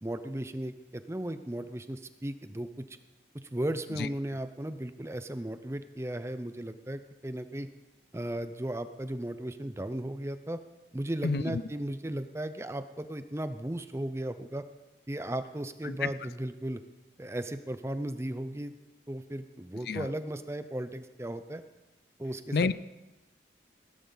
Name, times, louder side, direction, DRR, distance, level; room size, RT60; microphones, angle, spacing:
voice 1, 0.0-3.0 3.3-7.7 8.1-10.6 10.9-14.6 15.1-16.8 17.2-18.7 19.1-21.6 22.2-22.6, right 1 dB, 15° right, 10 dB, 0.6 m, -36 dB
voice 2, 11.2-11.6 15.8-16.1 19.9-20.1 22.5-22.7, left 4 dB, 60° left, 16 dB, 0.4 m, -29 dB
16.5 x 12.5 x 4.0 m, 1.1 s
head